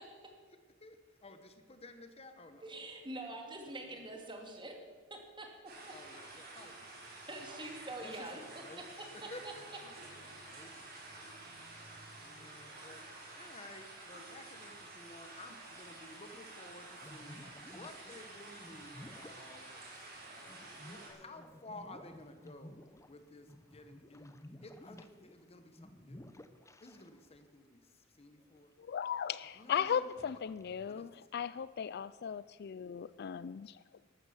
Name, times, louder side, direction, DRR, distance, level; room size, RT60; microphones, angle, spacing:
voice 1, 0.5-2.7 3.8-4.1 5.9-7.0 7.3-7.4 8.0-8.8 9.1-10.7 12.2-13.0 13.3-20.1 20.4-22.8 23.1-24.3 24.6-26.3 26.8-28.7 29.5-30.4 30.8-31.3, left 2 dB, 30° left, 8 dB, 1.1 m, -54 dB
voice 2, 2.6-4.8 5.1-5.7 7.3-8.4 9.0-9.1, right 2 dB, 25° right, 3 dB, 2.4 m, -45 dB
sound 1, 5.7-21.1, right 2 dB, 50° right, 5.2 m, -50 dB
sound 2, 17.0-27.4 27.7-27.8 28.4-28.8 29.4-31.2, left 1 dB, 15° left, 0.7 m, -55 dB
voice 3, 28.8-33.8, left 8 dB, 55° left, 17 dB, 0.4 m, -37 dB
13.5 x 12.5 x 7.1 m, 1.4 s
head